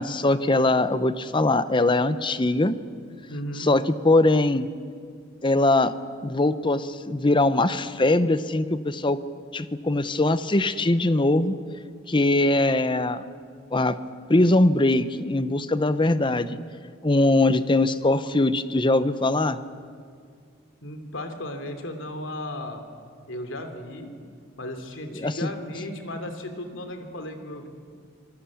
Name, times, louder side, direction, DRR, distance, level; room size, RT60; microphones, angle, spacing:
voice 1, 0.0-2.8 3.6-4.7 5.4-6.0 6.2-9.2 9.5-11.6 12.1-13.2 13.7-14.0 14.3-16.6 17.0-19.6 25.1-25.5, left 2 dB, 25° left, 13 dB, 0.8 m, -21 dB
voice 2, 3.3-3.7 20.8-22.8 23.3-24.1 24.6-27.7, left 1 dB, 80° left, 7 dB, 3.0 m, -35 dB
27.0 x 19.5 x 8.6 m, 2.2 s
head